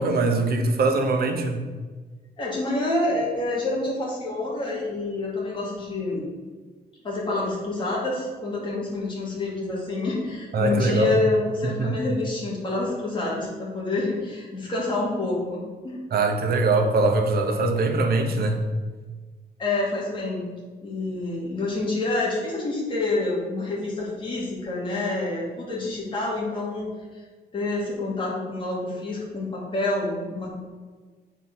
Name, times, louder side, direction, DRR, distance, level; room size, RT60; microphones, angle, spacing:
voice 1, 0.0-1.6 10.5-11.1 11.6-11.9 16.1-18.6, right 2 dB, 65° right, 4 dB, 1.1 m, -22 dB
voice 2, 2.4-6.2 7.0-16.0 18.3-18.6 19.6-20.4 20.8-26.9 27.5-30.5, left 2 dB, 30° left, -5 dB, 2.5 m, -27 dB
7.7 x 4.5 x 6.1 m, 1.4 s
wide cardioid pair, 175°, 17 cm